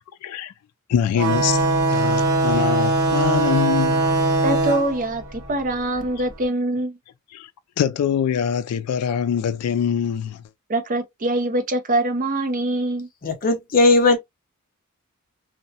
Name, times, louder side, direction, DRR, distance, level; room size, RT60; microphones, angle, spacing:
voice 1, 0.2-0.5 0.9-4.2 7.3-7.5 7.8-10.4, left 8 dB, 85° left, 0.3 m, -24 dB
sound 1, 1.2-6.3, right 2 dB, 60° right, 1.6 m, -21 dB
voice 2, 4.4-7.0 10.7-13.1, right 1 dB, 40° right, 0.6 m, -24 dB
voice 3, 13.2-14.2, left 3 dB, 40° left, 0.6 m, -17 dB
2.7 x 2.1 x 2.6 m
head